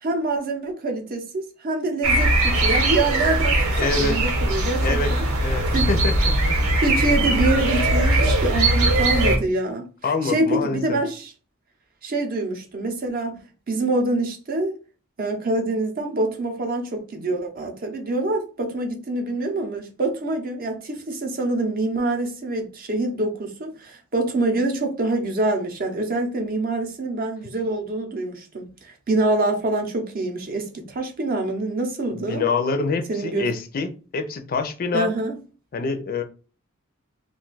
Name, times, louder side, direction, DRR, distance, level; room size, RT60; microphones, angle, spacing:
voice 1, 0.0-5.3 5.7-5.9 6.8-11.3 12.0-13.4 13.7-14.7 15.2-32.4 33.1-33.5 34.9-35.4, right 2 dB, 45° right, 0.6 m, -25 dB
sound 1, 2.0-9.4, right 1 dB, 85° right, 0.9 m, -20 dB
voice 2, 3.8-4.2 4.8-6.6 7.2-7.4 10.0-11.0 32.1-35.1 35.7-36.2, left 4 dB, 45° left, 0.4 m, -26 dB
2.4 x 2.3 x 3.8 m
head